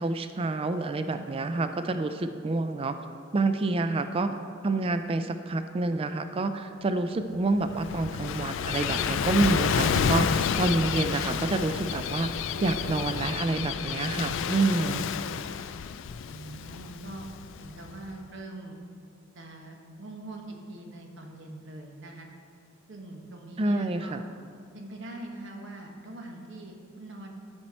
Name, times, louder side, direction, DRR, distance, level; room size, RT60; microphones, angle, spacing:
voice 1, 0.0-3.0 3.3-4.3 4.6-12.3 12.6-15.1 23.6-24.2, right 3 dB, 30° right, 9 dB, 0.4 m, -28 dB
Gull seagull / Waves surf, 7.4-18.0, left 7 dB, 65° left, 0.3 m, -30 dB
voice 2, 16.3-17.3 17.6-18.8 19.3-22.3 22.9-24.2 24.7-27.3, right 2 dB, 65° right, 2 dB, 1.1 m, -43 dB
13.5 x 4.4 x 4.3 m, 2.3 s
head